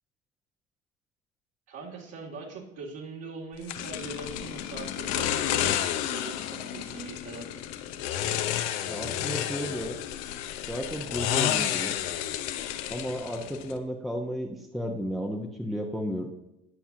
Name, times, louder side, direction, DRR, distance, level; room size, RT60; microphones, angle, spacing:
voice 1, 1.7-5.7 6.1-7.5, right 4 dB, 50° right, -1 dB, 2.6 m, -41 dB
sound 1, 3.7-13.8, left 11 dB, 50° left, 0.9 m, -31 dB
voice 2, 8.9-10.0 10.7-11.9 12.9-16.3, equal, ahead, 2 dB, 1.1 m, -33 dB
19.0 x 7.2 x 2.8 m, 0.88 s
figure-of-eight pair, 65°, 33 cm